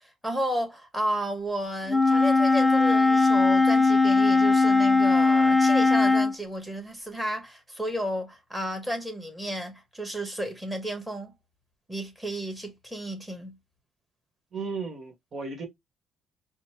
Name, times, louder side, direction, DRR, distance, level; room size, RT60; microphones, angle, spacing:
voice 1, 0.0-11.3 11.9-13.6, equal, 5° right, 1.4 m, -33 dB
Wind instrument woodwind instrument, 1.9-6.3, left 3 dB, 10° left, 0.3 m, -20 dB
voice 2, 14.5-15.7, right 4 dB, 50° right, 1.5 m, -35 dB
5.1 x 2.1 x 3.1 m
cardioid pair, 105°, 0 cm